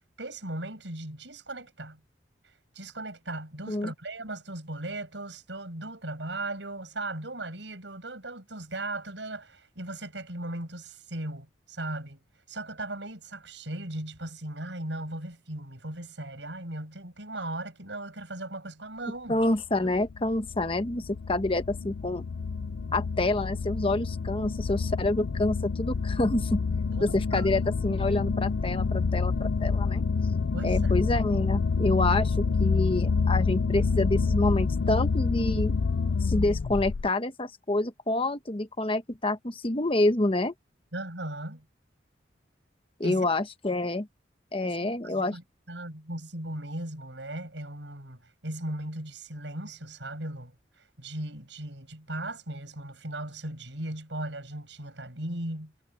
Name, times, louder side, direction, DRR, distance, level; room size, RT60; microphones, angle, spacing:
voice 1, 0.0-2.0 2.7-12.2 12.5-19.4 26.9-27.5 30.5-31.0 40.9-41.7 43.0-43.3 44.6-45.4 45.7-50.5 51.0-55.7, right 1 dB, 80° right, 6.3 m, -37 dB
voice 2, 19.3-22.2 22.9-26.6 27.0-30.0 30.6-35.7 36.2-40.5 43.0-44.1 44.5-45.4, left 2 dB, 30° left, 1.1 m, -27 dB
sound 1, 19.6-37.1, left 4 dB, 85° left, 0.5 m, -28 dB
head